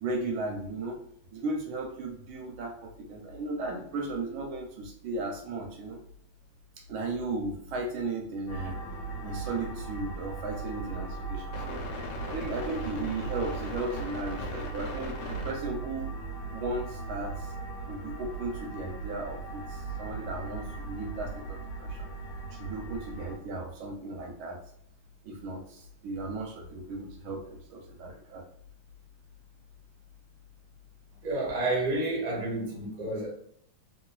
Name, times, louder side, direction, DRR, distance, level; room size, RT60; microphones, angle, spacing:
voice 1, 0.0-1.0 1.3-6.0 6.9-8.8 9.2-11.9 12.3-17.5 17.9-22.1 22.5-24.6 25.2-28.4, right 2 dB, 75° right, 2 dB, 1.3 m, -36 dB
sound 1, 8.5-23.4, right 2 dB, 80° left, 1.5 m, -37 dB
voice 2, 31.2-33.3, right 2 dB, 40° right, -4 dB, 0.6 m, -30 dB
3.0 x 2.9 x 2.3 m, 0.69 s
omnidirectional pair, 2.4 m